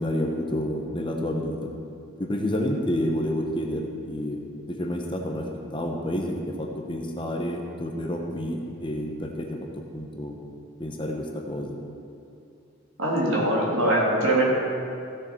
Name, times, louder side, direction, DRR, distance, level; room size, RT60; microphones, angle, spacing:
voice 1, 0.0-1.7 2.2-4.4 4.8-5.4 5.7-9.5 9.9-10.4 10.8-11.8, left 1 dB, 25° left, 1 dB, 1.0 m, -29 dB
voice 2, 13.0-14.4, right 1 dB, 85° right, -4 dB, 2.8 m, -22 dB
15.5 x 7.1 x 4.5 m, 2.6 s
head